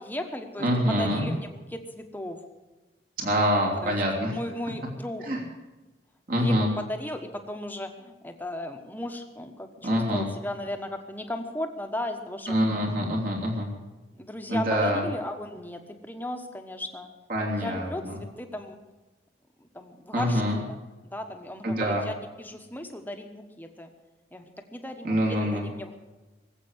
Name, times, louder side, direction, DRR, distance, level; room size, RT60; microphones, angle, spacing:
voice 1, 0.0-2.4 3.8-4.0 4.3-5.3 6.3-12.6 13.0-13.1 14.2-17.1 17.5-18.8 19.6-20.4 20.7-20.8 21.1-23.9 24.3-24.4 24.7-26.0, left 1 dB, 10° left, 5 dB, 1.3 m, -36 dB
voice 2, 0.6-1.3 3.2-4.3 5.3-5.4 6.3-6.7 9.8-10.3 12.5-13.7 14.5-15.0 17.3-18.2 20.1-20.6 21.6-22.0 25.0-25.7, equal, 50° right, -1 dB, 3.1 m, -25 dB
20.0 x 8.2 x 8.1 m, 1.1 s
head